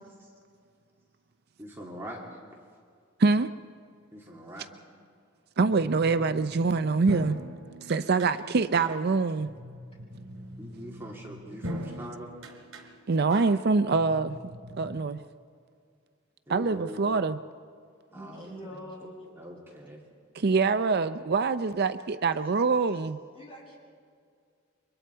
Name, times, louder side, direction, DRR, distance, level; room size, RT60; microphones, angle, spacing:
voice 1, 1.6-2.2 4.1-4.7 10.6-12.3 16.5-17.0 18.1-18.5 19.4-20.0, right 1 dB, 10° right, -3 dB, 2.6 m, -42 dB
voice 2, 5.6-7.4 7.8-9.5 13.1-15.2 16.5-17.4 20.3-23.2, right 4 dB, 50° right, 11 dB, 0.5 m, -25 dB
sound 1, 5.7-15.0, equal, 80° right, 3.4 m, -42 dB
voice 3, 18.1-19.3 23.3-23.8, equal, 25° left, -3 dB, 7.1 m, -44 dB
29.5 x 24.0 x 4.6 m, 2.2 s
head